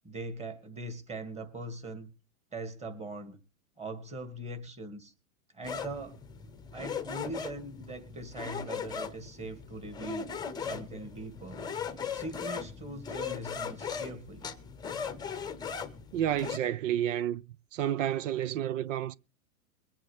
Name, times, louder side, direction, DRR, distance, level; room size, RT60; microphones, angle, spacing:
voice 1, 0.0-2.1 2.5-3.4 3.8-5.1 5.5-6.2 6.7-10.3 10.6-11.6 12.1-14.5, right 2 dB, 15° right, 2.1 m, -41 dB
sound 1, 5.6-16.6, left 6 dB, 10° left, 0.9 m, -38 dB
voice 2, 16.1-17.4 17.7-19.1, right 11 dB, 55° right, 0.7 m, -30 dB
22.5 x 9.0 x 3.5 m
hypercardioid pair, 135°, 45 cm